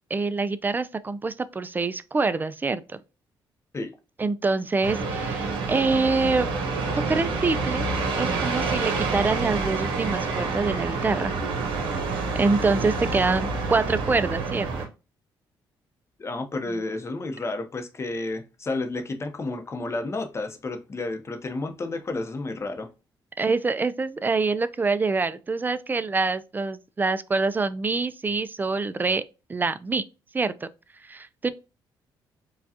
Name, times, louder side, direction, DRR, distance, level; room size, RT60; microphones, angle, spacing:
voice 1, 0.1-3.0 4.2-6.5 7.1-7.9 8.1-11.3 12.3-14.7 16.7-16.8 23.4-29.2 29.5-30.0 30.3-30.7 31.0-31.5, right 3 dB, 20° right, 0.4 m, -25 dB
sound 1, 4.8-14.9, right 4 dB, 85° right, 1.0 m, -28 dB
voice 2, 16.2-22.9, left 2 dB, 35° left, 0.8 m, -31 dB
4.8 x 2.3 x 2.7 m
cardioid pair, 95°, 8 cm